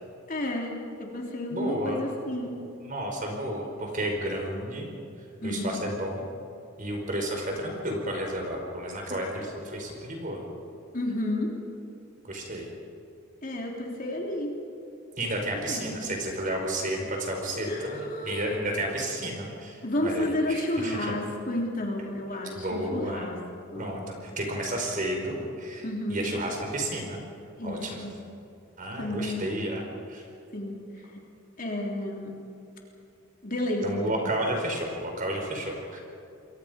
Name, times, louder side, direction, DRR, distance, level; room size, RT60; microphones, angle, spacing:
voice 1, 0.3-2.6 5.4-5.8 10.9-11.5 13.4-14.5 15.7-16.2 17.7-18.6 19.8-23.4 23.7-23.9 25.8-26.2 27.6-28.1 28.9-29.6 30.5-30.8 31.1-31.2 31.6-32.3 33.4-34.1, left 1 dB, 40° left, 0 dB, 3.4 m, -31 dB
voice 2, 1.5-2.1 2.8-4.9 5.4-6.2 6.8-10.4 12.3-12.7 15.2-21.1 22.5-23.3 23.7-27.2 27.6-28.0 28.8-30.2 33.8-36.0, right 1 dB, 40° right, 1 dB, 5.0 m, -32 dB
28.5 x 22.5 x 5.3 m, 2.7 s
head